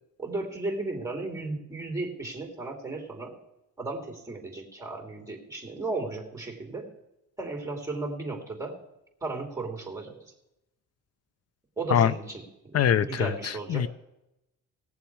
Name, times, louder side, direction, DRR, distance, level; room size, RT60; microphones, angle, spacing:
voice 1, 0.2-3.4 3.8-6.9 7.4-8.8 9.2-10.2 11.8-13.9, right 3 dB, 10° right, 1 dB, 2.9 m, -35 dB
voice 2, 12.7-13.9, left 9 dB, 55° left, 17 dB, 0.5 m, -24 dB
18.0 x 7.1 x 4.7 m, 0.90 s
cardioid pair, 90°, 30 cm